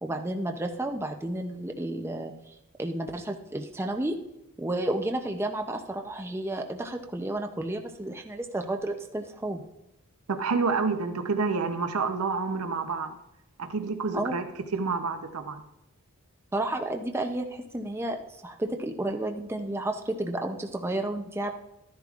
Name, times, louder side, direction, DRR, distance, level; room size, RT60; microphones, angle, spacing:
voice 1, 0.0-4.2 4.6-9.6 14.1-14.4 16.5-21.5, right 1 dB, 10° right, 4 dB, 0.5 m, -32 dB
voice 2, 10.3-13.1 13.6-14.4 14.7-15.6, right 4 dB, 75° right, 6 dB, 0.7 m, -28 dB
13.0 x 10.5 x 2.4 m, 0.88 s
head